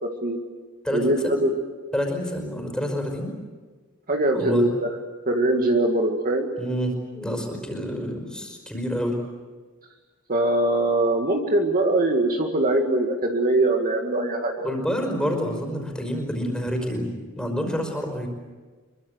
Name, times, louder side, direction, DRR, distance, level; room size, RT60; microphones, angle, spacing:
voice 1, 0.0-0.4 0.9-1.6 4.1-5.0 5.3-6.5 10.3-14.7, right 1 dB, 40° right, 2 dB, 2.0 m, -22 dB
voice 2, 0.8-1.4 1.9-3.3 4.3-4.7 6.6-9.2 14.6-18.3, equal, 5° left, 3 dB, 5.2 m, -28 dB
26.0 x 23.5 x 8.1 m, 1.4 s
head